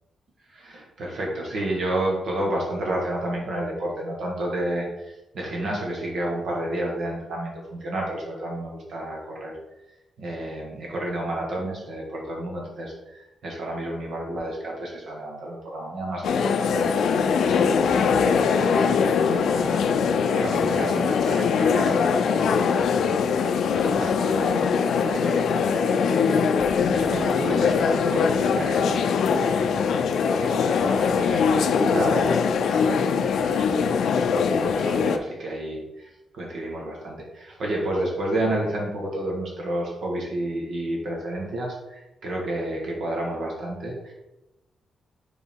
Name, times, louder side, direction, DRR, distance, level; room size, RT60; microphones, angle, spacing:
voice 1, 0.5-9.6 10.2-16.9 17.4-29.7 30.0-44.1, right 1 dB, 60° right, -2 dB, 1.8 m, -31 dB
sound 1, 16.2-35.2, left 6 dB, 75° left, 0.5 m, -22 dB
6.9 x 4.0 x 4.5 m, 0.96 s
wide cardioid pair, 165°, 0 cm